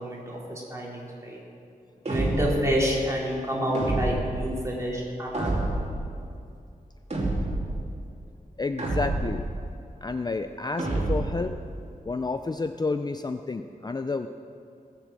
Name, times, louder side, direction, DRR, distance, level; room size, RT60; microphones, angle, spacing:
voice 1, 0.0-1.4 2.0-5.9, equal, 20° right, -4 dB, 3.7 m, -29 dB
sound 1, 2.0-2.7 3.7-4.4 5.3-6.0 7.1-7.7 8.8-9.5 10.8-11.4, right 2 dB, 50° right, 3.0 m, -28 dB
voice 2, 8.6-9.4 10.0-11.6 12.1-14.3, left 3 dB, 30° left, 8 dB, 0.4 m, -30 dB
18.5 x 6.8 x 7.6 m, 2.4 s
wide cardioid pair, 90°, 15 cm